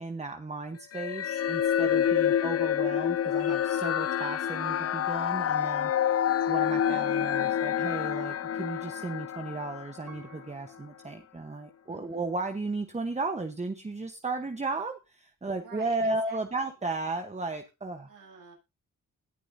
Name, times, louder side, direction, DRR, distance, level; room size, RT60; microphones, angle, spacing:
voice 1, 0.0-5.9 6.5-18.1, right 3 dB, 20° right, 6 dB, 1.1 m, -34 dB
sound 1, 0.9-10.4, left 9 dB, 50° left, 0.5 m, -28 dB
voice 2, 6.1-6.5 11.9-12.3 15.6-16.7 18.1-18.5, right 4 dB, 80° right, -3 dB, 7.6 m, -51 dB
Piano, 10.1-12.0 12.6-12.7, right 8 dB, 60° right, 6.0 m, -58 dB
20.5 x 6.9 x 2.8 m, 0.27 s
cardioid pair, 70°, 33 cm